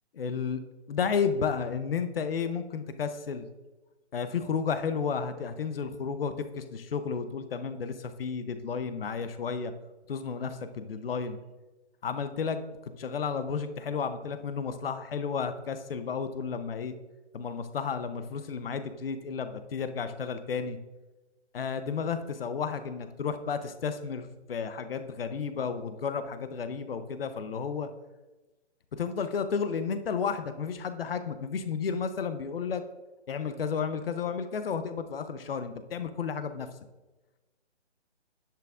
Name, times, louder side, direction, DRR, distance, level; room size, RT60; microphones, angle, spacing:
voice 1, 0.1-0.6 0.9-3.5 4.1-9.7 10.1-11.4 12.0-12.6 13.0-16.9 17.3-20.8 21.5-27.9 28.9-32.8 33.3-36.7, left 6 dB, 55° left, 10 dB, 0.8 m, -32 dB
10.5 x 8.5 x 2.5 m, 1.1 s
hypercardioid pair, 155°, 35 cm